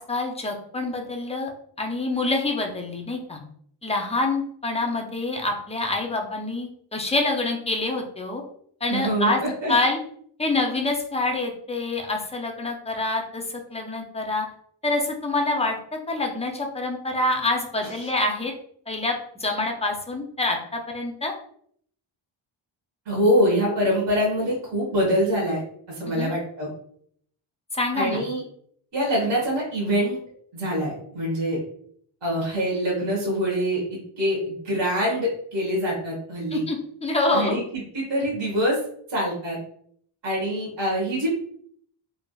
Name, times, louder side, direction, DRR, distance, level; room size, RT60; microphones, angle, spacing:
voice 1, 0.0-1.5 1.8-3.4 3.8-8.4 8.8-9.4 9.7-10.0 10.4-14.5 14.8-15.8 16.1-18.5 18.9-21.3 26.0-26.3 27.7-28.2 36.5-37.6, left 2 dB, 15° left, 2 dB, 0.4 m, -26 dB
voice 2, 8.9-9.7 23.1-25.6 25.9-26.7 27.9-28.4 28.9-30.2 30.5-31.6 32.2-36.6 37.3-37.6 37.9-38.8 39.1-39.6 40.2-41.3, equal, 60° right, -4 dB, 1.2 m, -24 dB
3.2 x 2.6 x 2.2 m, 0.63 s
wide cardioid pair, 150°, 48 cm